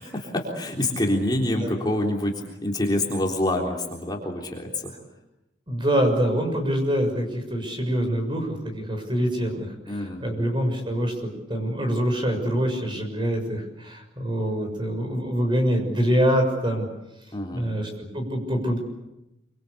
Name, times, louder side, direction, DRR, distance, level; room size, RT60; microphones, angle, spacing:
voice 1, 0.0-4.9 9.9-10.5 17.3-17.7, left 1 dB, 20° left, 0 dB, 3.6 m, -26 dB
voice 2, 5.7-16.9 17.5-18.8, equal, 25° right, 4 dB, 6.6 m, -25 dB
26.5 x 25.5 x 8.5 m, 0.92 s
head